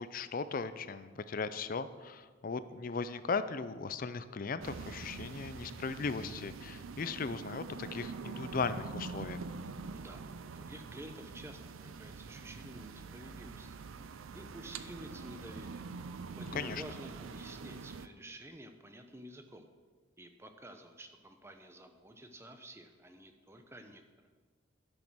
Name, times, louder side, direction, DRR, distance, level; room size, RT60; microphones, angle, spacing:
voice 1, 0.0-9.4 16.5-16.8, left 4 dB, 45° left, 13 dB, 0.4 m, -37 dB
sound 1, 4.6-18.1, right 4 dB, 80° right, 0.5 m, -45 dB
voice 2, 9.9-13.8 14.3-15.8 16.3-19.7 20.2-24.0, right 1 dB, 15° right, 6 dB, 0.7 m, -51 dB
11.5 x 6.4 x 6.1 m, 1.4 s
head